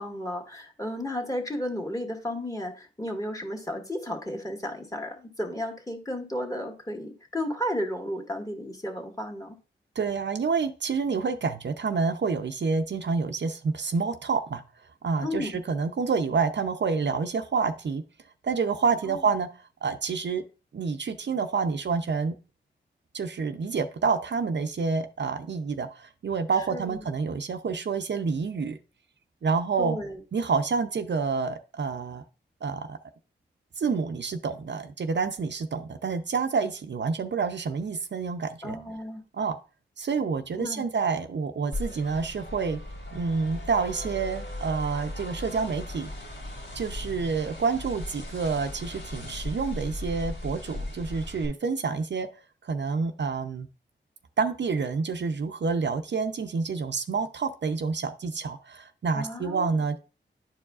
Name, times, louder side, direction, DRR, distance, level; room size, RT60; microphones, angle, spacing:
voice 1, 0.0-9.6 15.2-15.6 19.1-19.3 26.7-27.0 29.8-30.2 38.6-39.2 40.6-40.9 59.1-59.8, left 1 dB, 15° left, 1 dB, 1.8 m, -33 dB
voice 2, 10.0-14.6 15.0-18.0 18.4-19.5 19.8-20.4 20.7-22.4 23.1-28.8 29.4-30.0 30.3-32.2 32.6-33.0 33.8-38.8 39.4-39.6 40.0-42.8 43.1-46.1 46.7-52.3 52.6-53.7 54.4-60.0, right 5 dB, 60° right, 8 dB, 0.6 m, -28 dB
sound 1, 41.7-51.4, left 1 dB, 65° left, 2.5 m, -37 dB
10.5 x 4.7 x 2.4 m, 0.32 s
cardioid pair, 50°, 20 cm